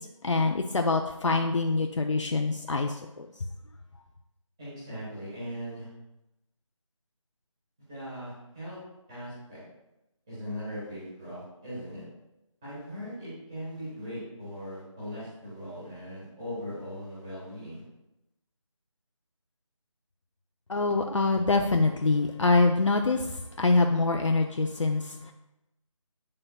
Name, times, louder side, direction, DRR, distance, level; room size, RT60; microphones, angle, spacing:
voice 1, 0.2-3.3 20.7-25.3, left 3 dB, 60° left, 4 dB, 0.5 m, -25 dB
voice 2, 4.6-5.9 7.8-8.8 9.1-9.6 10.3-12.0 12.6-17.8, equal, 5° right, -10 dB, 1.2 m, -39 dB
8.4 x 6.7 x 2.2 m, 0.93 s
figure-of-eight pair, 175°, 17 cm